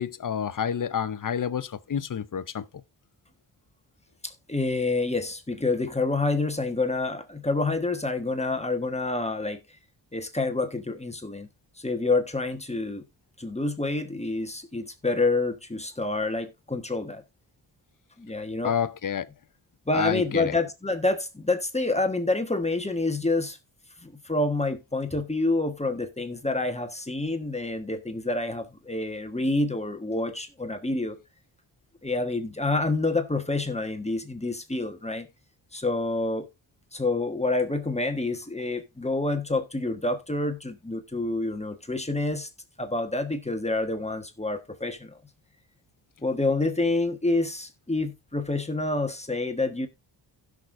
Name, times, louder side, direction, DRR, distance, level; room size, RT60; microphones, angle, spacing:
voice 1, 0.0-2.7 18.6-19.3 19.9-20.6, left 8 dB, 45° left, 0.7 m, -29 dB
voice 2, 4.2-9.6 10.1-11.5 11.8-13.0 13.4-17.2 18.2-18.7 19.9-23.6 24.0-31.2 32.0-35.3 35.7-36.5 36.9-42.5 42.8-45.1 46.2-49.9, left 2 dB, 15° left, 1.4 m, -28 dB
16.0 x 6.4 x 2.6 m
cardioid pair, 65°, 47 cm